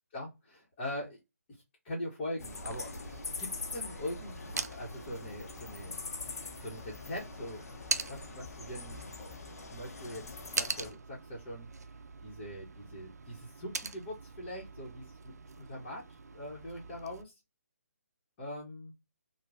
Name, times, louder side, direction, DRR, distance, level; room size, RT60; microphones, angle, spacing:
voice 1, 0.1-1.2 1.8-3.0 3.4-6.0 6.6-7.6 7.9-9.3 9.7-11.7 12.2-17.3 18.4-18.9, left 1 dB, 25° left, -6 dB, 1.0 m, -42 dB
sound 1, 2.4-10.9, left 3 dB, 75° left, 0.7 m, -43 dB
sound 2, 2.5-17.2, right 4 dB, 85° right, 0.4 m, -43 dB
2.9 x 2.2 x 2.5 m, 0.21 s
hypercardioid pair, 155°, 8 cm